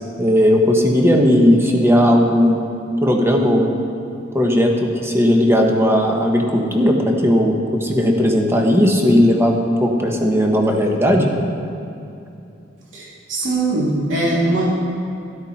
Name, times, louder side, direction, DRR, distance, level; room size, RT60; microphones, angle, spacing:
voice 1, 0.2-2.6 3.0-3.7 4.3-11.3, equal, 15° right, 1 dB, 1.3 m, -16 dB
voice 2, 12.9-14.7, right 2 dB, 70° right, -5 dB, 2.7 m, -21 dB
12.5 x 12.0 x 4.3 m, 2.7 s
head